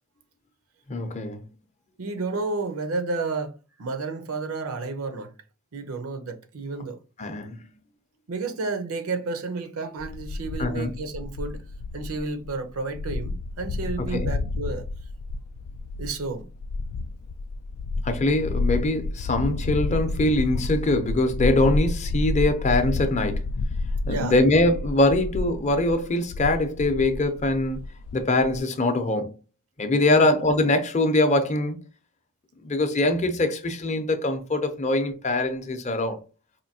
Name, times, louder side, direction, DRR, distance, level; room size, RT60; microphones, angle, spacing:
voice 1, 0.9-1.4 7.2-7.7 10.6-10.9 14.1-14.3 18.0-23.5 24.1-27.8 28.1-29.3 29.8-31.8 32.6-36.2, left 2 dB, 35° left, 0.6 m, -23 dB
voice 2, 2.0-5.3 5.7-7.0 8.3-11.6 11.9-14.9 16.0-16.5 24.0-24.4 30.1-30.3, right 3 dB, 70° right, 0.6 m, -31 dB
sound 1, 10.0-28.6, left 3 dB, 85° left, 0.3 m, -30 dB
4.3 x 2.6 x 2.7 m
head